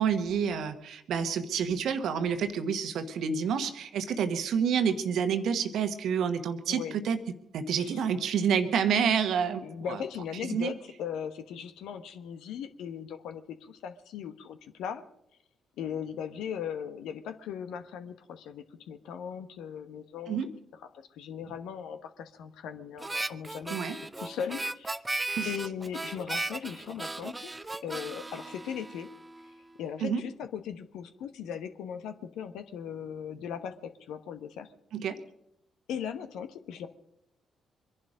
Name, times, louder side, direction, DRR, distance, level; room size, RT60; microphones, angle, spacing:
voice 1, 0.0-7.2 7.5-9.6 9.9-10.0 10.5-10.7 20.3-20.5 23.7-24.0 25.4-25.5 30.0-30.2 34.9-35.2, right 7 dB, 65° right, 9 dB, 1.3 m, -28 dB
voice 2, 6.7-7.0 7.7-8.0 9.6-15.0 15.8-20.4 21.1-23.8 24.2-25.0 25.4-27.5 27.8-29.1 29.8-34.7 35.9-36.9, left 8 dB, 65° left, 10 dB, 1.0 m, -38 dB
Harmonica, 23.0-29.5, right 2 dB, 20° right, 0.6 m, -36 dB
24.0 x 11.0 x 5.1 m, 0.77 s
hypercardioid pair, 40°, 0 cm